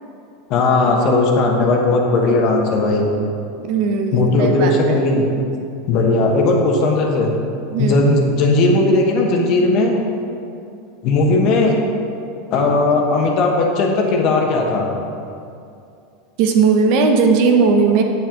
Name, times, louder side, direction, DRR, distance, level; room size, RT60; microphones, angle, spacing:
voice 1, 0.5-3.1 4.1-5.3 5.9-7.3 7.8-9.9 11.0-11.8 12.5-14.9, left 2 dB, 50° left, 1 dB, 1.4 m, -16 dB
voice 2, 3.7-5.0 7.7-8.0 16.4-18.0, right 5 dB, 60° right, 4 dB, 0.9 m, -16 dB
8.1 x 7.6 x 3.9 m, 2.5 s
supercardioid pair, 125°, 0 cm